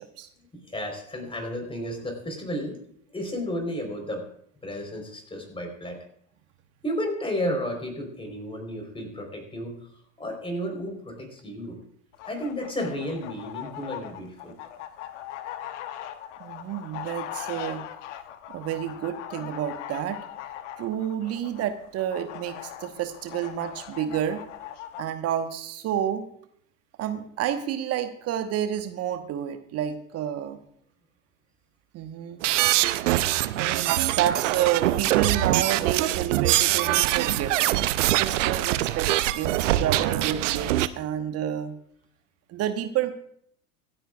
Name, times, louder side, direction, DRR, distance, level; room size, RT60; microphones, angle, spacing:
voice 1, 0.4-2.8 3.1-4.3 4.6-6.0 6.8-9.8 10.2-11.8 12.3-14.6, equal, 10° left, 3 dB, 4.0 m, -32 dB
sound 1, 12.1-25.0, left 11 dB, 55° left, 1.1 m, -40 dB
voice 2, 16.4-17.8 18.5-20.2 20.8-24.4 25.0-26.2 27.0-30.6 31.9-32.4 33.5-37.7 38.1-39.1 39.3-41.7 42.5-43.1, right 10 dB, 35° right, 8 dB, 1.2 m, -29 dB
sound 2, 32.4-40.9, right 15 dB, 60° right, 0.7 m, -23 dB
25.0 x 9.0 x 2.4 m, 0.67 s
figure-of-eight pair, 80°, 43 cm